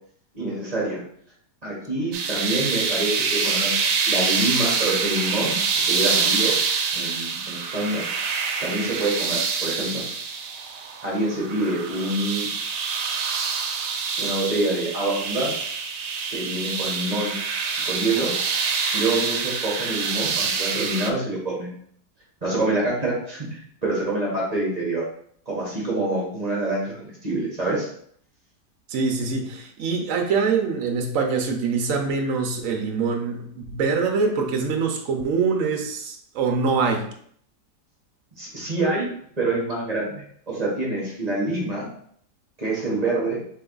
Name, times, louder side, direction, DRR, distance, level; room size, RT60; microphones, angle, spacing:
voice 1, 0.3-1.0 1.6-3.8 4.0-6.5 6.9-8.0 8.6-10.0 11.0-12.5 14.2-15.7 16.3-17.3 17.8-18.3 18.9-21.7 22.4-25.0 25.5-27.9 38.4-41.9 42.6-43.4, right 2 dB, 25° right, -5 dB, 1.4 m, -26 dB
sound 1, 2.1-21.1, right 5 dB, 85° right, 1.2 m, -26 dB
voice 2, 28.9-37.1, right 5 dB, 60° right, 2 dB, 1.0 m, -24 dB
3.9 x 3.4 x 3.8 m, 0.63 s
omnidirectional pair, 1.7 m